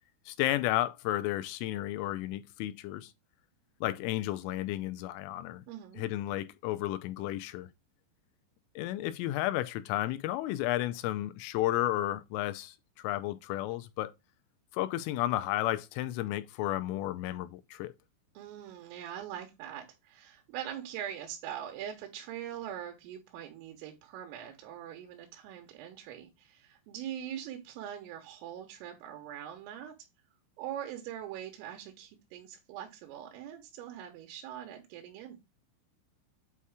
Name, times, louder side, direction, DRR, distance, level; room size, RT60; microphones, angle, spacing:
voice 1, 0.3-3.1 3.8-5.6 6.0-7.7 8.8-14.1 14.7-17.9, left 15 dB, 85° left, 3.2 m, -32 dB
voice 2, 5.7-6.0 18.4-29.9 30.6-35.4, right 10 dB, 85° right, 3.7 m, -42 dB
8.3 x 2.9 x 4.7 m
omnidirectional pair, 5.7 m